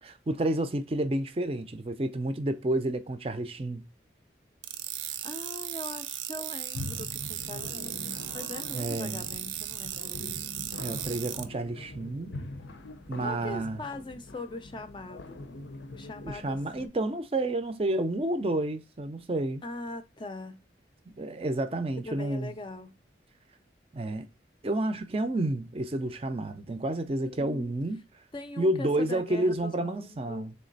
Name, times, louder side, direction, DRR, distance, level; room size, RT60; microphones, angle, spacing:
voice 1, 0.0-3.9 8.7-9.3 10.8-12.4 13.1-13.8 16.2-19.6 21.1-22.6 23.9-24.3 24.6-28.0 28.6-30.5, right 1 dB, 30° right, 0.5 m, -30 dB
sound 1, 4.6-11.4, right 12 dB, 90° right, 0.5 m, -36 dB
voice 2, 5.0-10.3 13.2-15.4 15.9-16.6 19.6-20.6 22.0-22.9 27.2-27.7 28.3-30.5, left 2 dB, 25° left, 0.4 m, -41 dB
sound 2, 6.7-16.9, left 2 dB, 80° left, 0.6 m, -43 dB
3.7 x 3.2 x 3.9 m
head